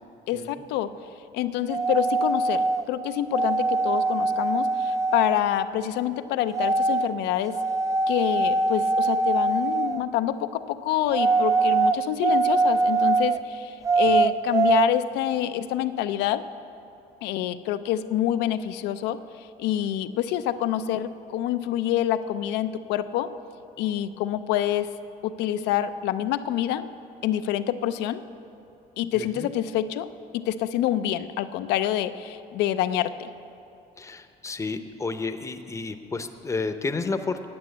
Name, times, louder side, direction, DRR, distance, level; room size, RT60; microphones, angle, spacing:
voice 1, 0.3-0.9 1.3-7.6 8.1-16.4 17.2-23.3 23.8-24.9 25.2-26.9 27.2-28.2 29.0-30.1 30.3-33.3, left 11 dB, 90° left, 11 dB, 0.5 m, -27 dB
sound 1, 1.7-2.9 3.3-5.4 6.5-7.1 7.5-10.0 11.1-13.4 13.8-14.9, right 3 dB, 20° right, 0.4 m, -23 dB
voice 2, 29.1-29.5 34.0-37.5, left 3 dB, 15° left, 8 dB, 0.6 m, -31 dB
9.0 x 8.7 x 7.9 m, 2.7 s
cardioid pair, 110°, 17 cm